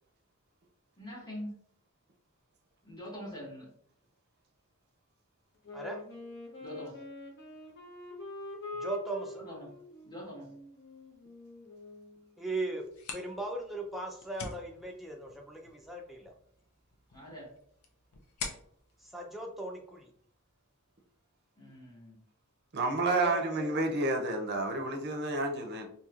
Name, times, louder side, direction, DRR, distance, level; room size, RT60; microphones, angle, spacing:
voice 1, 1.0-1.5 2.8-3.7 6.6-7.0 9.4-9.7 10.0-10.5 17.1-17.5 21.6-22.2, equal, 20° left, -4 dB, 1.3 m, -44 dB
Wind instrument woodwind instrument, 5.6-12.2, left 2 dB, 55° left, 0.9 m, -45 dB
voice 2, 8.7-9.4 12.4-12.8 13.1-16.3 19.0-20.1 23.0-23.7, right 2 dB, ahead, 0 dB, 0.5 m, -38 dB
sound 1, 12.8-20.3, left 4 dB, 90° left, 0.6 m, -47 dB
voice 3, 22.7-25.9, right 2 dB, 50° right, 4 dB, 0.6 m, -30 dB
4.3 x 2.7 x 2.4 m, 0.66 s
head